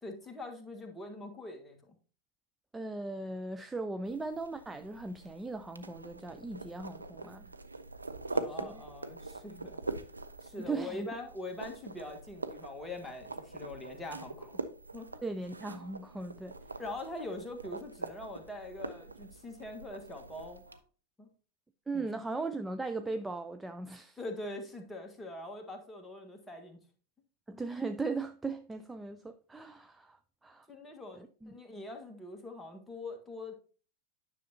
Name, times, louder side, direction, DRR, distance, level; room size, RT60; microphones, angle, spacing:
voice 1, 0.0-1.9 8.3-9.8 10.4-14.6 14.9-15.2 16.8-20.6 21.2-21.3 21.9-22.1 24.2-26.8 30.7-33.5, left 2 dB, 10° left, 1.4 m, -43 dB
voice 2, 2.7-7.5 8.5-8.8 10.6-11.1 15.2-16.6 21.9-24.2 27.5-30.7 31.1-31.5, right 3 dB, 10° right, 0.4 m, -38 dB
sound 1, 4.0-20.8, right 3 dB, 80° right, 0.5 m, -43 dB
10.0 x 6.3 x 2.8 m
figure-of-eight pair, 90°, 0 cm